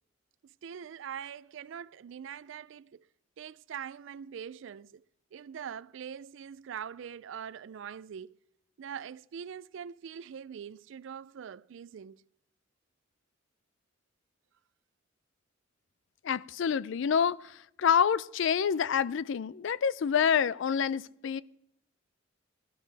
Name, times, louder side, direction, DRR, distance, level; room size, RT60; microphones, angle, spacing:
voice 1, 0.4-3.0 3.4-5.0 5.3-8.4 8.8-12.2, right 8 dB, 65° right, 0.3 m, -43 dB
voice 2, 16.2-21.4, left 7 dB, 65° left, 0.4 m, -27 dB
17.0 x 12.5 x 3.4 m
head